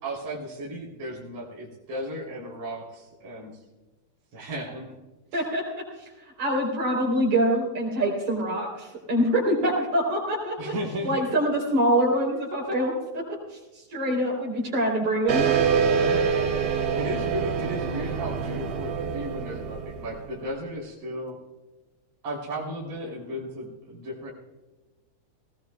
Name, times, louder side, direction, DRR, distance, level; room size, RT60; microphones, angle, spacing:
voice 1, 0.0-3.6 4.3-4.9 5.3-5.4 10.6-11.2 15.9-16.6 16.9-21.4 22.2-24.3, equal, 35° right, -4 dB, 3.9 m, -35 dB
voice 2, 5.3-5.8 6.4-10.7 11.0-13.2 13.5-15.6, right 1 dB, 55° right, 0 dB, 4.9 m, -25 dB
sound 1, 15.3-20.4, right 6 dB, 75° right, 3.6 m, -26 dB
19.5 x 18.0 x 2.3 m, 1.2 s
omnidirectional pair, 4.2 m